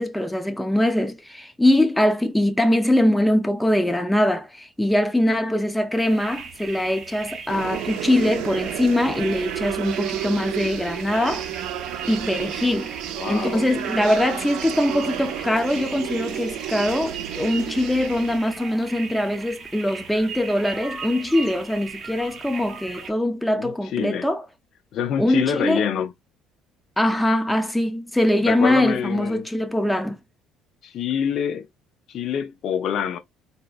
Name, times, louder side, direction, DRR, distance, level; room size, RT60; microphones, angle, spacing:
voice 1, 0.0-11.8 12.1-12.9 13.3-24.5 25.2-25.9 27.0-30.2, left 1 dB, 5° left, 0.5 m, -22 dB
sound 1, 6.0-23.1, right 5 dB, 35° right, 1.0 m, -38 dB
sound 2, 7.5-18.4, right 12 dB, 80° right, 0.5 m, -32 dB
voice 2, 13.2-13.7 23.6-24.3 24.9-26.1 28.4-29.4 30.8-31.7 32.1-33.2, left 8 dB, 55° left, 0.5 m, -26 dB
4.0 x 2.8 x 2.4 m
cardioid pair, 130°, 0 cm